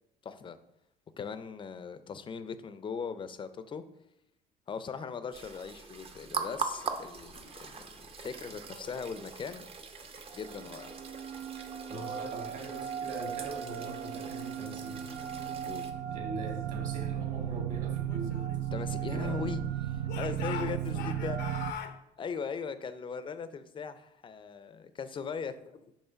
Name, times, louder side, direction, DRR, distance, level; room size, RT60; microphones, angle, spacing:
voice 1, 0.2-0.6 1.2-3.8 4.7-9.6 10.3-10.9 15.7-15.9 18.7-21.4 22.2-25.9, left 6 dB, 30° left, 12 dB, 0.5 m, -39 dB
sound 1, 5.3-15.9, right 5 dB, 35° right, 0.6 m, -42 dB
sound 2, 10.4-21.7, right 11 dB, 85° right, 0.4 m, -36 dB
voice 2, 11.9-15.0 16.1-18.4 19.0-19.4, right 2 dB, 50° right, 1 dB, 1.7 m, -41 dB
Speech / Shout, 18.1-19.6 20.1-22.0, left 8 dB, 85° left, 0.7 m, -42 dB
5.6 x 3.4 x 5.6 m, 0.83 s
cardioid pair, 110°, 17 cm